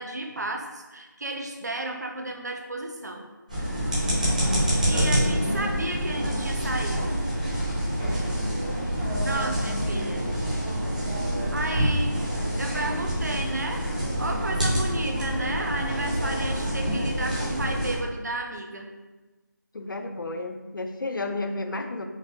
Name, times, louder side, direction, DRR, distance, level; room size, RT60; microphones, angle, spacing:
voice 1, 0.0-3.3 4.8-7.2 9.2-10.2 11.5-12.2 12.6-13.9 14.2-18.9, right 2 dB, 55° right, 2 dB, 0.5 m, -33 dB
sound 1, 3.5-18.0, equal, 20° right, 0.8 m, -26 dB
voice 2, 19.7-22.1, left 2 dB, 80° left, 6 dB, 0.4 m, -32 dB
4.6 x 2.0 x 2.7 m, 1.2 s
figure-of-eight pair, 180°, 11 cm